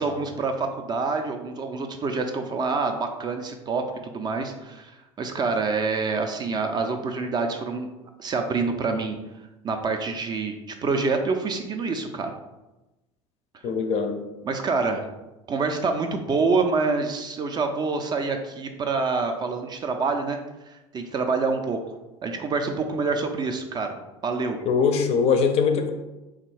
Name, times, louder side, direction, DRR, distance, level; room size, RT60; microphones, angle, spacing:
voice 1, 0.0-7.9 8.2-9.2 9.6-12.3 14.4-15.1 15.5-20.4 20.9-21.8 22.2-23.9 24.2-24.6, right 4 dB, 25° right, 5 dB, 0.3 m, -26 dB
voice 2, 13.6-14.2 24.7-25.9, left 5 dB, 40° left, 6 dB, 0.5 m, -22 dB
3.5 x 2.3 x 3.1 m, 1.0 s
figure-of-eight pair, 75°, 17 cm